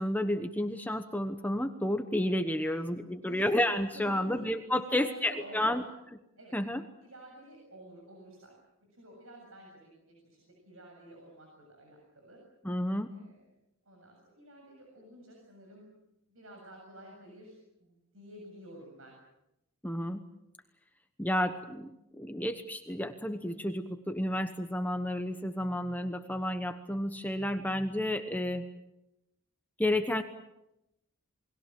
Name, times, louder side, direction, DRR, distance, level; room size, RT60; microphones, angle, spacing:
voice 1, 0.0-5.8 6.5-6.8 12.6-13.1 19.8-20.2 21.2-28.7 29.8-30.2, left 1 dB, 10° left, 7 dB, 1.1 m, -31 dB
voice 2, 3.1-4.4 4.7-5.9 6.4-6.6 7.0-8.6 8.8-12.4 13.1-13.4 13.9-15.9 16.3-19.2, right 1 dB, 70° right, 0 dB, 7.4 m, -51 dB
29.0 x 21.5 x 7.6 m, 0.88 s
head